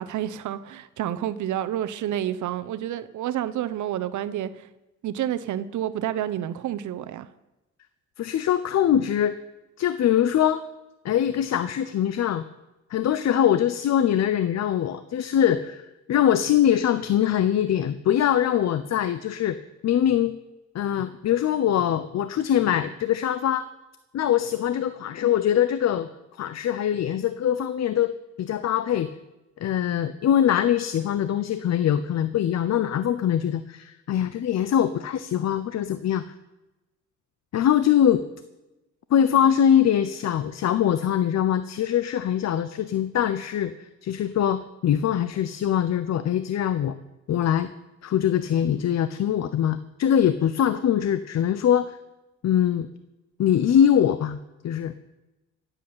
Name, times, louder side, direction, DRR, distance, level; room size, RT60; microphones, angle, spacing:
voice 1, 0.0-4.7 5.0-7.3, right 11 dB, 75° right, 1.0 m, -29 dB
voice 2, 8.2-9.4 9.8-10.6 11.0-12.4 12.9-19.6 19.8-20.4 20.7-23.7 24.1-28.1 28.4-29.1 29.6-36.2 37.5-38.2 39.1-47.0 47.3-47.7 48.0-52.0 52.4-52.9 53.4-54.4 54.6-54.9, left 10 dB, 60° left, 0.8 m, -23 dB
15.5 x 8.4 x 8.7 m
cardioid pair, 90°, 30 cm